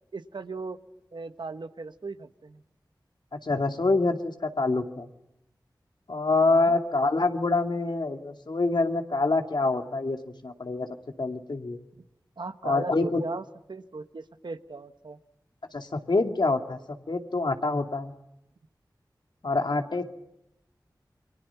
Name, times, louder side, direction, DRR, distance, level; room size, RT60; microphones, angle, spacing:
voice 1, 0.1-0.8 1.1-2.6 6.5-6.7 12.4-15.2, right 3 dB, 75° right, 10 dB, 1.4 m, -38 dB
voice 2, 3.4-5.1 6.1-10.9 11.2-11.8 12.6-13.2 15.7-16.8 17.1-18.1 19.4-20.0, left 3 dB, 70° left, 5 dB, 2.5 m, -26 dB
29.5 x 24.0 x 5.8 m, 0.85 s
wide cardioid pair, 45°, 8 cm